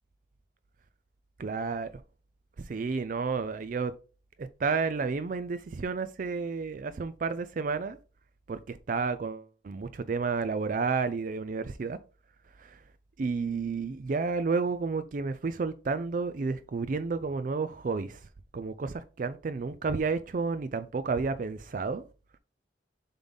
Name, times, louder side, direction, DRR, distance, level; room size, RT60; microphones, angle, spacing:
voice 1, 1.4-1.9 2.6-3.9 4.4-8.0 8.5-12.0 12.6-12.8 13.2-18.2 18.5-22.0, right 4 dB, 45° right, 0.4 m, -31 dB
6.9 x 3.8 x 3.9 m
head